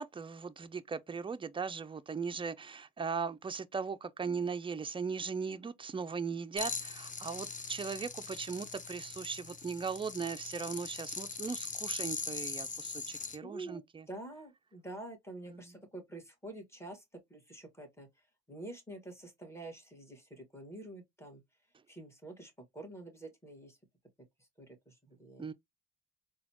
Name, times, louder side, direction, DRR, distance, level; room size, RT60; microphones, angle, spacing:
voice 1, 0.0-14.1 15.5-15.8 25.4-25.5, right 5 dB, 20° right, 0.4 m, -38 dB
sound 1, 6.6-13.4, left 4 dB, 25° left, 0.6 m, -41 dB
voice 2, 13.4-17.0 17.3-18.1 18.5-21.4 21.9-23.8 24.6-25.5, right 2 dB, 10° left, 1.5 m, -47 dB
4.0 x 2.3 x 2.9 m
cardioid pair, 90°, 30 cm